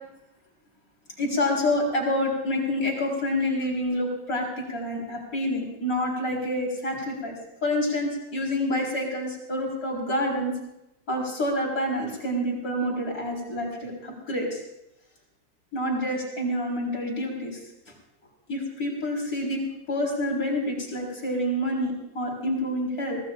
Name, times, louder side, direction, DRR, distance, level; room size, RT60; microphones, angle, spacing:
voice 1, 1.2-7.3 7.6-10.5 11.1-14.6 15.7-17.6 18.5-19.6 19.9-23.2, left 1 dB, 45° left, -1 dB, 5.1 m, -27 dB
25.5 x 18.0 x 2.6 m, 0.88 s
omnidirectional pair, 2.1 m